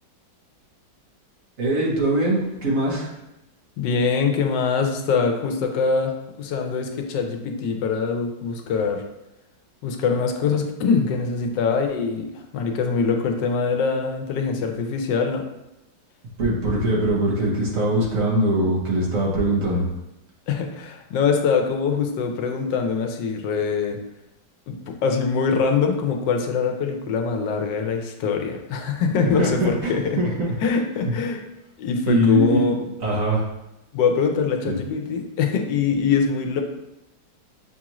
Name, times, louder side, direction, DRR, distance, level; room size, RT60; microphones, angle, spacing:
voice 1, 1.6-3.1 16.4-19.9 29.4-30.5 32.1-32.7 33.0-33.4 34.7-34.8, right 1 dB, 55° right, -4 dB, 1.3 m, -22 dB
voice 2, 3.8-9.0 9.8-15.4 20.5-24.0 24.7-30.2 30.6-31.4 31.8-32.7 33.9-36.6, left 5 dB, 80° left, 3 dB, 1.3 m, -23 dB
7.0 x 2.4 x 2.9 m, 0.90 s
omnidirectional pair, 1.9 m